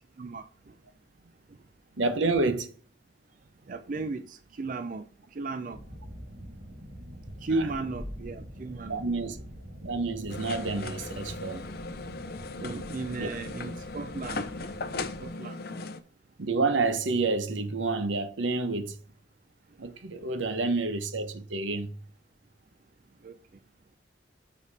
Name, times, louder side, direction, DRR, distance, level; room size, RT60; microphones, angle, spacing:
voice 1, 2.0-2.7 8.9-9.4 9.8-11.6 13.2-13.3 16.4-19.0 19.8-21.9, right 3 dB, 85° right, 0.9 m, -29 dB
voice 2, 3.7-5.0 5.4-5.8 7.4-9.0 12.6-14.5 15.2-15.5 23.2-23.3, right 3 dB, 45° right, 0.4 m, -34 dB
sound 1, 5.7-15.3, equal, 65° right, 3.6 m, -44 dB
sound 2, 10.3-16.0, left 3 dB, 55° left, 0.6 m, -38 dB
6.7 x 5.1 x 4.1 m
head